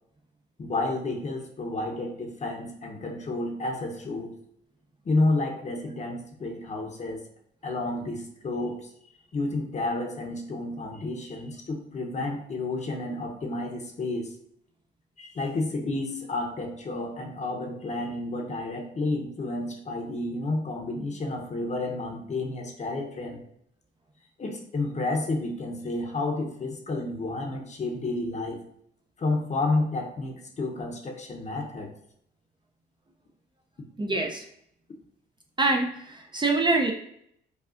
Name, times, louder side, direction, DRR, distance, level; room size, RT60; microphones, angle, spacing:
voice 1, 0.6-4.3 5.0-7.2 7.6-8.9 9.3-14.3 15.2-23.4 24.4-28.6 29.2-31.9, left 2 dB, 35° left, 2 dB, 0.7 m, -30 dB
voice 2, 34.0-34.5 35.6-36.9, right 3 dB, 25° right, 2 dB, 0.5 m, -25 dB
4.8 x 2.3 x 2.5 m, 0.70 s
cardioid pair, 90°, 20 cm